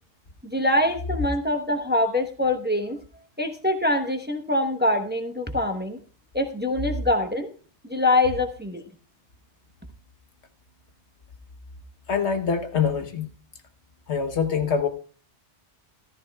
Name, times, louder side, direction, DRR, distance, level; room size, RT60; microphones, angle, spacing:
voice 1, 0.4-3.0 3.4-6.0 6.3-7.5 7.9-8.8, left 1 dB, 10° right, 0.9 m, -24 dB
voice 2, 12.1-13.3 14.1-14.9, left 6 dB, 80° left, 1.4 m, -24 dB
14.5 x 13.5 x 2.3 m
omnidirectional pair, 1.1 m